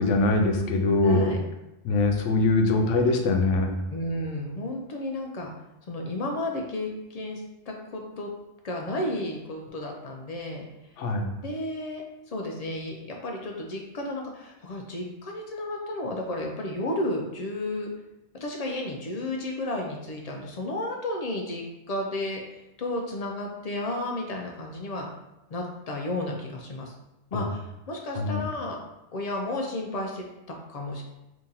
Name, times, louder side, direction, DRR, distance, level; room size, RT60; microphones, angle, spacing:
voice 1, 0.0-1.3 1.8-3.7 11.0-11.3 27.3-27.4 28.2-28.4, left 2 dB, 85° left, 4 dB, 0.9 m, -22 dB
voice 2, 1.0-1.4 3.9-5.5 5.9-8.3 8.6-10.7 11.4-17.9 18.4-25.1 25.5-26.9 27.3-28.8 29.1-31.0, left 1 dB, 60° left, 1 dB, 0.4 m, -32 dB
2.9 x 2.7 x 3.7 m, 0.91 s
omnidirectional pair, 1.2 m